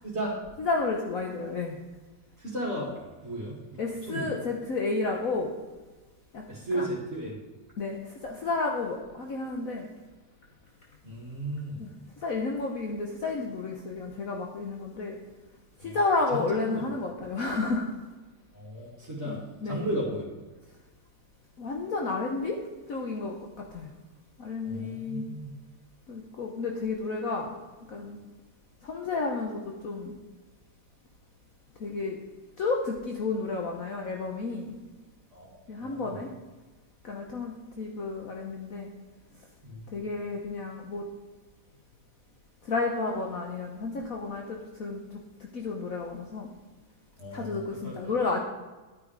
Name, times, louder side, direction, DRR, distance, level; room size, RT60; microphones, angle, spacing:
voice 1, 0.6-1.8 3.8-5.5 6.3-6.4 6.7-6.9 7.8-9.9 11.8-11.9 12.2-15.2 15.8-17.9 19.2-19.8 21.6-22.6 22.9-23.4 23.7-23.9 24.4-25.3 26.1-27.6 27.9-28.2 28.8-30.2 31.8-32.2 32.6-34.8 35.7-36.3 37.0-38.9 39.9-41.0 42.6-45.2 45.5-46.5 47.3-48.4, left 3 dB, 55° left, 1 dB, 1.5 m, -31 dB
voice 2, 2.4-2.9 3.2-3.8 4.1-4.3 6.5-7.3 11.0-11.8 15.8-16.0 16.3-17.0 18.5-20.3 24.6-25.5 35.3-36.2 39.6-39.9 47.2-47.9, right 1 dB, 40° right, -4 dB, 2.7 m, -35 dB
11.5 x 9.7 x 4.8 m, 1.2 s
omnidirectional pair, 1.9 m